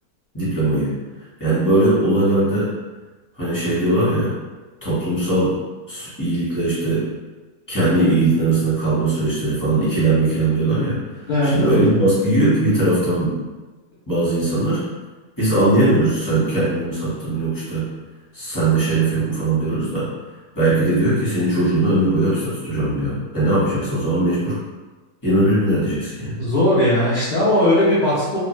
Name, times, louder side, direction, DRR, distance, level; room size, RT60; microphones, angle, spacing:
voice 1, 0.3-0.9 1.4-2.7 3.3-4.3 4.8-5.5 5.9-7.0 7.7-11.0 11.4-13.3 14.1-14.8 15.4-17.9 18.3-20.1 20.5-24.6 25.2-26.4, right 2 dB, 15° left, -10 dB, 1.0 m, -19 dB
voice 2, 11.3-12.0 26.4-28.4, left 1 dB, 55° left, -10 dB, 0.5 m, -18 dB
2.4 x 2.4 x 3.1 m, 1.2 s
omnidirectional pair, 1.6 m